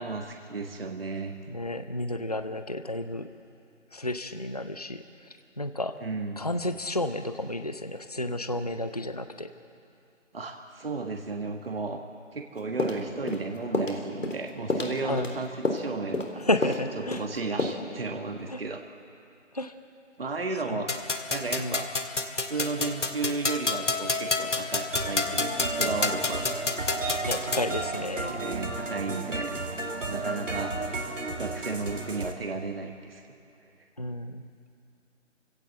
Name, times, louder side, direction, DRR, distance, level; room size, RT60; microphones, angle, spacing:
voice 1, 0.0-1.4 6.0-6.4 10.3-12.0 12.3-16.3 16.9-18.8 20.2-20.9 21.3-21.9 22.5-26.5 28.4-29.5 30.0-30.7 31.4-33.2, right 3 dB, 50° right, 4 dB, 1.6 m, -34 dB
voice 2, 1.5-3.3 3.9-5.0 5.6-5.9 6.4-9.5 15.0-15.3 16.4-17.2 18.5-18.6 19.5-19.7 20.7-20.8 21.6-21.8 22.6-22.7 27.2-28.4 34.0-34.5, left 1 dB, 30° left, 10 dB, 0.6 m, -31 dB
sound 1, 12.8-13.4 13.7-14.0 14.2-14.4 14.7-15.3 15.6-15.9 16.1-16.3 16.6-16.8 17.1-17.3 17.6-17.7, left 2 dB, 85° left, 3.7 m, -28 dB
sound 2, 20.9-27.7, left 3 dB, 70° left, 1.9 m, -30 dB
sound 3, 24.9-32.3, right 3 dB, 75° right, 2.6 m, -33 dB
28.5 x 16.5 x 7.7 m, 2.6 s
figure-of-eight pair, 175°, 38 cm